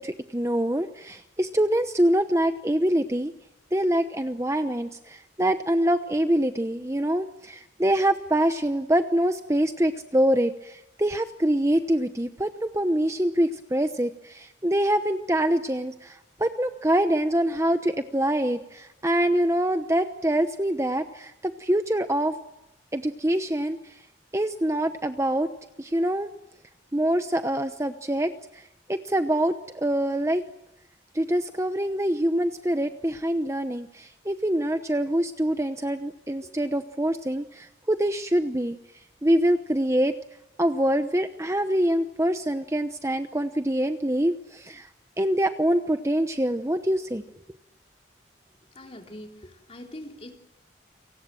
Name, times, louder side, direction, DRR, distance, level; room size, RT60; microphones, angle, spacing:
voice 1, 0.0-3.3 3.7-22.3 22.9-24.0 24.3-25.5 25.8-26.3 26.9-30.4 31.1-38.8 39.2-40.2 40.6-44.9 45.2-47.2, right 1 dB, 15° right, 8 dB, 0.9 m, -25 dB
voice 2, 48.7-50.4, left 1 dB, 30° left, 2 dB, 3.5 m, -43 dB
29.5 x 24.0 x 7.7 m, 0.91 s
head